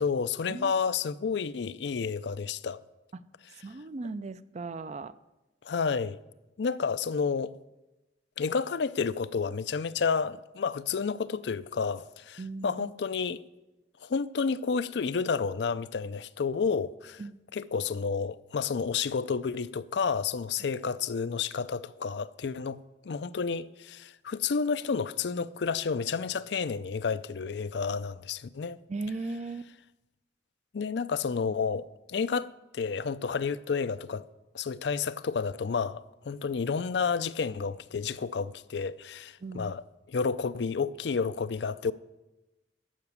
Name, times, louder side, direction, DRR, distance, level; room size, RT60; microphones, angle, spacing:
voice 1, 0.0-2.8 5.6-6.2 6.6-7.5 8.4-13.4 14.0-17.2 17.5-28.8 30.7-34.3 34.5-39.8 40.1-41.9, left 5 dB, 65° left, 0.4 m, -30 dB
voice 2, 3.5-5.2 12.4-12.9 17.2-17.4 28.9-29.7 39.4-39.7, right 3 dB, 40° right, 0.4 m, -37 dB
14.0 x 5.9 x 9.6 m
head